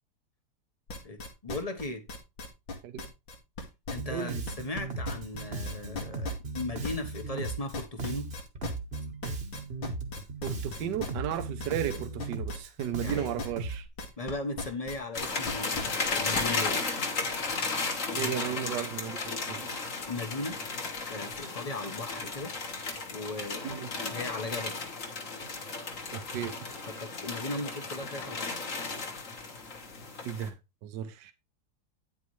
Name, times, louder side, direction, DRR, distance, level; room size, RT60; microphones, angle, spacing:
sound 1, 0.9-4.8 5.0-14.3 14.6-16.7, left 3 dB, 90° left, 2.8 m, -38 dB
voice 1, 1.0-2.0 3.9-8.3 13.0-13.3 14.2-16.8 18.1-18.5 20.1-20.6 21.1-22.5 23.1-24.8 26.9-28.5, left 2 dB, 25° left, 1.0 m, -37 dB
Bass guitar, 4.0-13.9, right 3 dB, 35° right, 1.3 m, -37 dB
voice 2, 4.1-4.4 10.4-13.9 18.2-19.8 23.6-23.9 26.1-26.6 30.2-30.5 30.8-31.3, right 10 dB, 70° right, 1.4 m, -34 dB
sound 2, 15.1-30.5, left 4 dB, 45° left, 1.8 m, -34 dB
9.3 x 8.5 x 3.2 m
omnidirectional pair, 2.0 m